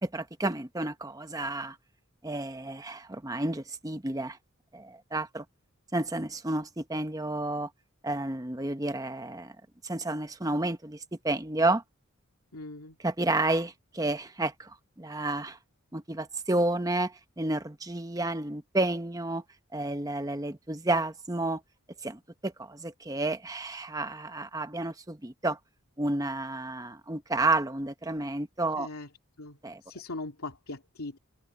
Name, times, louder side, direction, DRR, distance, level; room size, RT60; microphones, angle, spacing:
voice 1, 0.0-1.8 2.2-4.4 4.7-5.4 5.9-7.7 8.0-9.5 9.8-11.8 13.0-15.6 15.9-19.4 19.7-21.6 22.0-25.6 26.0-28.9 29.6-29.8, right 2 dB, 15° right, 0.9 m, -31 dB
voice 2, 12.5-13.0 28.8-29.1 29.4-31.2, left 2 dB, 80° left, 2.6 m, -40 dB
open air
head